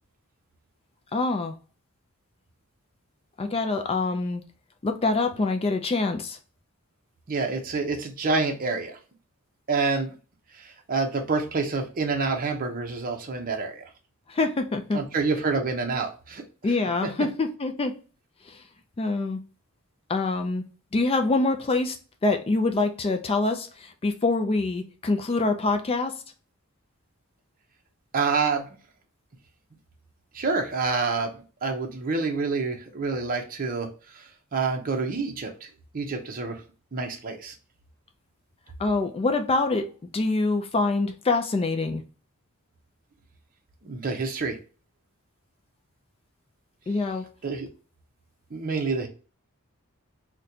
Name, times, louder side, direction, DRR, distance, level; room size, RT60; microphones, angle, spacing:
voice 1, 1.1-1.5 3.4-4.4 4.8-6.4 14.3-15.0 16.6-17.9 18.5-18.6 19.0-19.4 20.1-20.6 20.9-22.0 22.2-26.1 38.8-39.9 40.1-42.0 46.9-47.3, left 3 dB, 25° left, 0.4 m, -25 dB
voice 2, 7.3-8.9 9.7-10.1 10.6-13.8 14.9-16.4 28.1-28.8 30.3-31.3 31.6-33.9 34.1-34.2 34.5-35.5 35.9-36.6 36.9-37.5 43.8-44.6 47.4-47.7 48.5-49.1, right 4 dB, 40° right, 0.6 m, -27 dB
4.0 x 2.2 x 2.7 m
head